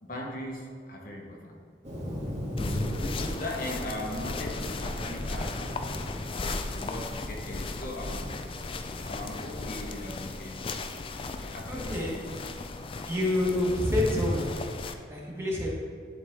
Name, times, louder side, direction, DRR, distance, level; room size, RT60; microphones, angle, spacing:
voice 1, 0.0-1.6 2.6-6.0 6.6-8.3 9.0-10.6 11.3-12.3, left 1 dB, 50° left, -1 dB, 1.1 m, -39 dB
Thunder, 1.8-10.6, equal, 40° right, 1.9 m, -39 dB
sound 1, 2.6-14.9, left 3 dB, 30° left, 0.4 m, -36 dB
voice 2, 11.7-12.1 13.0-14.5 15.1-15.7, left 1 dB, 15° right, -4 dB, 1.3 m, -27 dB
11.0 x 4.1 x 3.6 m, 2.1 s
head